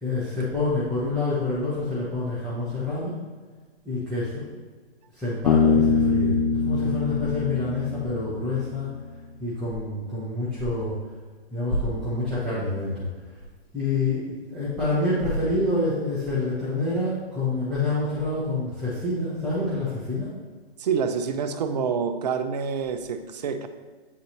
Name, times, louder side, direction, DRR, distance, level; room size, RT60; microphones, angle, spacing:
voice 1, 0.0-3.2 3.8-4.4 5.1-6.4 6.7-8.9 9.4-10.9 11.5-13.1 13.7-20.3, left 2 dB, ahead, -12 dB, 0.6 m, -27 dB
Bass guitar, 5.5-9.0, left 5 dB, 65° left, 0.7 m, -24 dB
voice 2, 20.8-23.7, right 6 dB, 40° right, 9 dB, 0.5 m, -27 dB
8.4 x 3.9 x 2.9 m, 1.4 s
hypercardioid pair, 145°, 31 cm